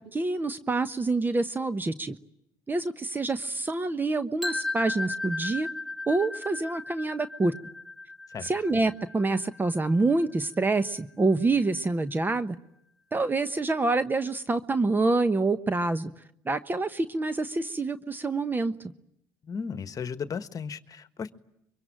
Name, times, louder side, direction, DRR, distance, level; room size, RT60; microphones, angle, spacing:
voice 1, 0.1-2.2 2.7-5.7 6.1-7.5 8.4-12.5 13.1-16.1 16.4-18.7, right 3 dB, 20° right, 12 dB, 1.1 m, -26 dB
sound 1, 4.4-10.3, left 2 dB, ahead, 1.4 m, -36 dB
voice 2, 19.4-21.3, left 6 dB, 40° left, 11 dB, 1.4 m, -35 dB
25.0 x 23.5 x 9.0 m, 0.78 s
hypercardioid pair, 65°, 9 cm